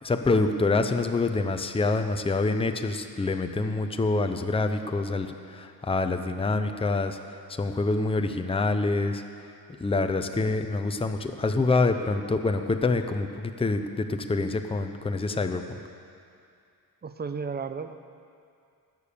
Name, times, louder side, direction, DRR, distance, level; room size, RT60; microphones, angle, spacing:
voice 1, 0.0-7.2 7.5-9.2 9.8-15.8, left 3 dB, 15° left, 7 dB, 0.7 m, -26 dB
voice 2, 17.0-17.9, right 5 dB, 25° right, 9 dB, 0.7 m, -33 dB
18.5 x 6.9 x 6.9 m, 2.4 s
cardioid pair, 105°, 39 cm